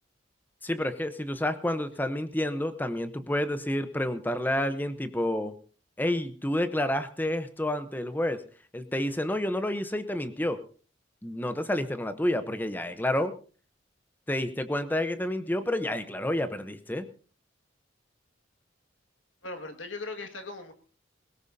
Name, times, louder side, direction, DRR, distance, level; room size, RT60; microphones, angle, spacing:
voice 1, 0.6-5.5 6.0-8.4 8.7-10.6 11.2-13.3 14.3-17.1, left 1 dB, 10° left, 10 dB, 0.8 m, -29 dB
voice 2, 19.4-20.7, left 3 dB, 85° left, 5 dB, 1.9 m, -38 dB
20.0 x 17.5 x 2.7 m, 0.38 s
head